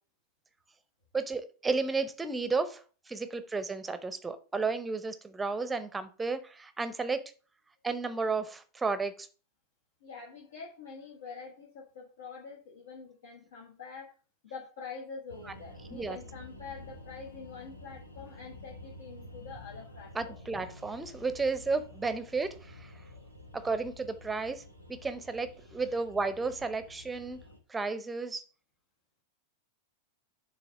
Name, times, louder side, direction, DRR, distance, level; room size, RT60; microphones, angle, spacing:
voice 1, 1.1-7.3 7.8-9.3 15.9-16.2 20.1-22.9 23.5-24.6 24.9-27.4 27.7-28.4, right 4 dB, 10° right, 0.7 m, -33 dB
voice 2, 10.0-14.1 14.4-20.4, left 5 dB, 60° left, 1.3 m, -46 dB
sound 1, 15.3-27.6, left 2 dB, 85° left, 1.1 m, -50 dB
6.9 x 3.2 x 5.9 m
figure-of-eight pair, 90°, 0 cm